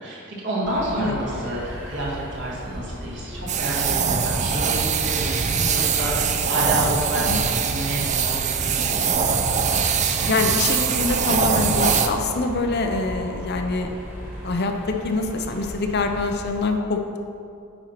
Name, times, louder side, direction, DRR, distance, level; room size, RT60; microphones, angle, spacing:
voice 1, 0.0-9.1, right 1 dB, 55° right, -5 dB, 2.0 m, -29 dB
sound 1, 0.6-16.5, equal, 10° right, 1.6 m, -36 dB
sound 2, 3.5-12.1, right 6 dB, 35° right, 0.4 m, -22 dB
voice 2, 10.3-14.0 14.4-17.2, left 3 dB, 50° left, 4 dB, 0.6 m, -25 dB
9.0 x 4.4 x 5.8 m, 2.5 s
head